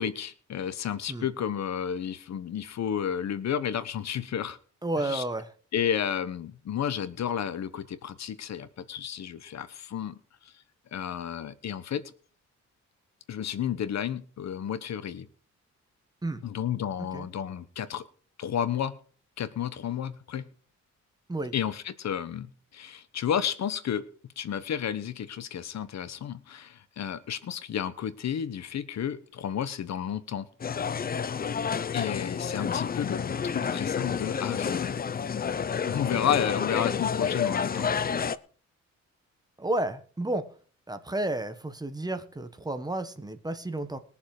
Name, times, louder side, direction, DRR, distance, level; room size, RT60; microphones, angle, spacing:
voice 1, 0.0-4.6 5.0-5.2 5.7-10.2 10.9-12.0 13.3-15.3 16.4-18.0 18.4-18.9 19.4-20.4 21.5-24.0 24.4-30.5 31.9-34.9 35.9-37.9, left 9 dB, 65° left, 14 dB, 1.1 m, -32 dB
voice 2, 4.8-5.5 16.2-16.4 17.0-17.3 21.3-21.5 39.6-40.4 40.9-44.0, right 1 dB, 15° right, 9 dB, 1.3 m, -31 dB
sound 1, 30.6-38.4, left 6 dB, 30° left, 0.6 m, -29 dB
21.0 x 7.2 x 4.9 m, 0.42 s
wide cardioid pair, 145°, 29 cm